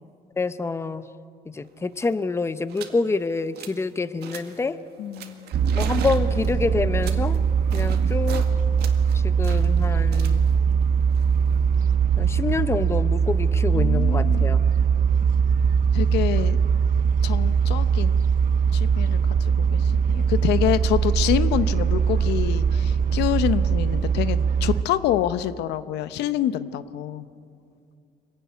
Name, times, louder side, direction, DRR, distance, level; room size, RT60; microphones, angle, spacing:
voice 1, 0.4-1.0 1.5-4.8 5.7-7.4 7.7-8.5 9.1-10.5 12.2-14.7, left 3 dB, 15° left, 13 dB, 0.7 m, -27 dB
sound 1, 1.7-1.8 1.9-2.2 2.7-3.0 3.3-3.9 4.2-4.7 5.1-8.5 8.8-11.8, right 8 dB, 75° right, 2.0 m, -40 dB
voice 2, 5.0-5.6 13.7-14.4 15.9-16.6 17.2-18.2 18.7-27.3, left 12 dB, 85° left, 13 dB, 0.9 m, -27 dB
sound 2, 5.5-24.8, right 6 dB, 55° right, 0.9 m, -21 dB
25.0 x 16.0 x 9.6 m, 2.4 s
cardioid pair, 110°, 17 cm